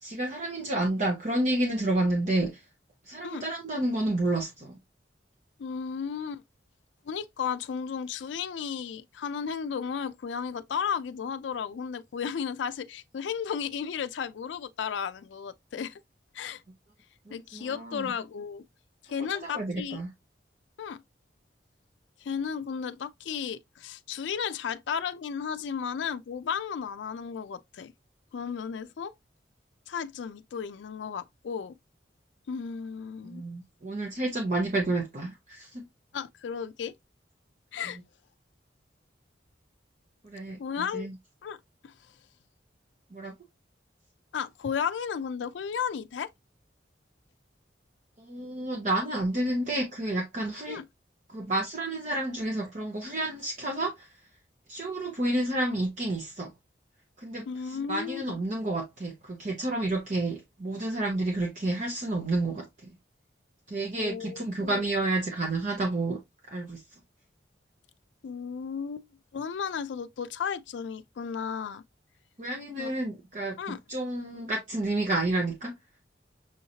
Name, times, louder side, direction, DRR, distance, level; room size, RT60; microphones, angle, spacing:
voice 1, 0.0-2.6 3.1-4.8 17.3-18.1 19.2-20.1 33.2-35.9 40.2-41.1 43.1-43.3 48.2-50.8 51.3-54.1 54.7-56.5 57.2-62.9 63.7-66.2 66.5-66.8 72.4-73.6 73.9-75.8, right 2 dB, 45° right, 0.9 m, -30 dB
voice 2, 5.6-6.4 7.1-16.0 16.3-16.6 17.3-18.6 19.0-20.0 20.8-21.0 22.2-27.9 28.3-29.1 29.9-31.7 32.5-33.4 36.1-36.9 37.7-38.0 40.6-41.1 41.4-41.6 41.8-41.9 44.3-46.3 50.7-50.8 57.5-58.4 64.0-64.8 68.2-69.1 69.3-71.8 72.8-72.9 73.6-73.8, left 7 dB, 90° left, 0.4 m, -34 dB
6.3 x 2.8 x 2.7 m
head